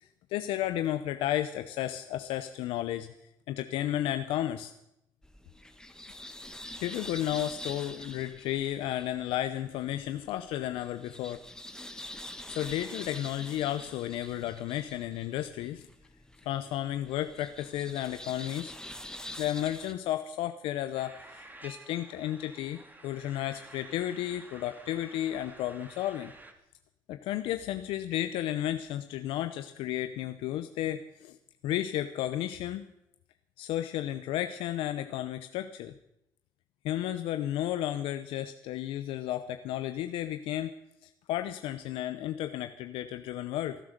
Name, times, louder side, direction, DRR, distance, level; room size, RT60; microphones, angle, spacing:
voice 1, 0.0-3.1 3.5-4.7 6.8-11.4 12.4-15.9 16.4-18.7 19.4-26.3 27.1-31.4 31.6-32.9 33.6-35.9 36.8-40.7 41.0-43.8, left 12 dB, 85° left, 9 dB, 0.7 m, -33 dB
sound 1, 5.2-19.9, left 1 dB, 5° left, 1.6 m, -46 dB
sound 2, 21.0-26.5, right 2 dB, 20° right, 2.8 m, -51 dB
18.0 x 11.0 x 6.6 m, 0.83 s
supercardioid pair, 60°, 9 cm